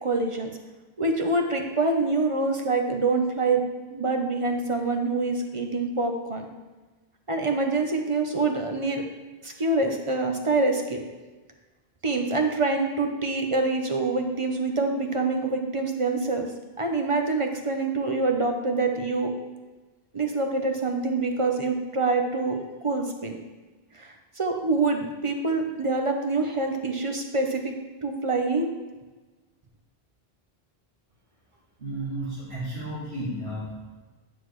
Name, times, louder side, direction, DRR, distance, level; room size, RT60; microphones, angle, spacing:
voice 1, 0.0-0.5 1.0-3.6 3.9-6.5 7.3-9.0 9.4-11.0 12.0-16.5 16.8-19.3 20.1-22.6 22.8-23.4 23.9-27.7 28.0-28.7, right 3 dB, 35° right, 3 dB, 0.7 m, -25 dB
voice 2, 31.8-34.0, right 1 dB, 75° right, -13 dB, 2.9 m, -33 dB
10.0 x 6.2 x 3.1 m, 1.2 s
omnidirectional pair, 1.0 m